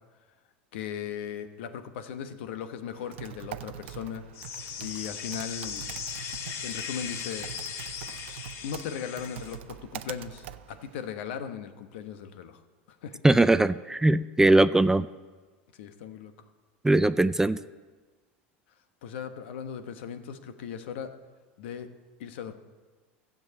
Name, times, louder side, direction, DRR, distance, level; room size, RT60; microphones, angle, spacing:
voice 1, 0.7-4.2 4.8-5.9 6.6-7.5 8.6-12.6 12.9-13.2 15.7-16.3 19.0-21.1 21.6-21.9 22.2-22.5, left 8 dB, 75° left, 9 dB, 1.1 m, -38 dB
Typing, 2.9-11.1, right 12 dB, 80° right, 0.6 m, -44 dB
sound 1, 4.3-9.6, left 7 dB, 50° left, 1.3 m, -38 dB
voice 2, 13.2-15.1 16.8-17.6, right 2 dB, 10° right, 14 dB, 0.3 m, -20 dB
13.0 x 7.4 x 8.2 m, 1.4 s
hypercardioid pair, 105°, 6 cm